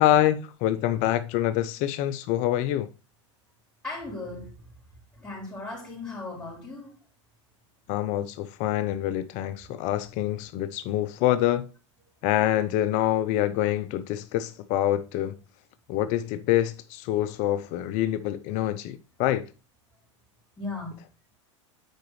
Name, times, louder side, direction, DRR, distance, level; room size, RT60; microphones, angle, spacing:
voice 1, 0.0-2.9 7.9-11.7 12.2-15.3 15.9-19.4, left 13 dB, 55° left, 0.6 m, -26 dB
voice 2, 3.8-4.5 5.2-6.9 20.6-21.0, left 2 dB, 10° left, 4.3 m, -36 dB
9.0 x 5.0 x 3.2 m
hypercardioid pair, 110°, 15 cm